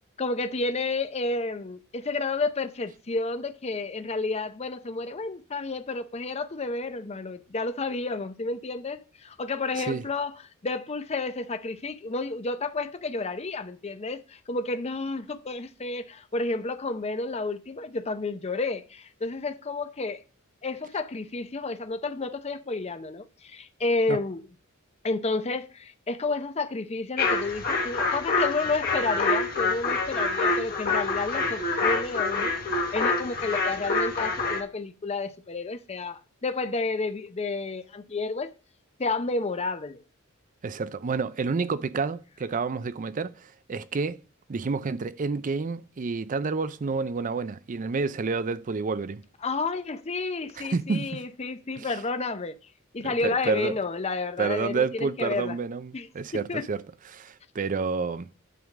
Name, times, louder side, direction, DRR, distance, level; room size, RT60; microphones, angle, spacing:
voice 1, 0.2-10.3 10.6-20.2 20.6-24.5 25.0-32.5 32.9-38.5 39.0-40.0 49.4-52.6 52.9-55.6 55.9-56.1 56.5-56.7, left 3 dB, 30° left, 0.6 m, -31 dB
sound 1, 27.2-34.6, left 3 dB, 45° left, 1.4 m, -26 dB
voice 2, 40.6-44.2 44.5-49.2 50.6-51.2 51.8-52.0 53.0-53.8 54.4-56.8 57.1-58.3, right 4 dB, 40° right, 0.4 m, -29 dB
9.3 x 3.7 x 7.1 m
head